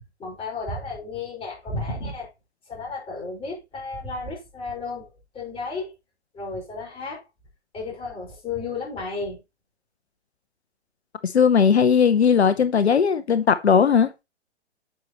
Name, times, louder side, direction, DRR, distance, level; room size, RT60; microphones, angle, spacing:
voice 1, 0.2-2.3 2.7-5.9 6.3-7.2 7.7-9.4, left 3 dB, 15° left, 5.1 m, -33 dB
voice 2, 11.2-14.1, left 6 dB, 70° left, 0.9 m, -18 dB
9.6 x 6.9 x 3.0 m
figure-of-eight pair, 120°, 34 cm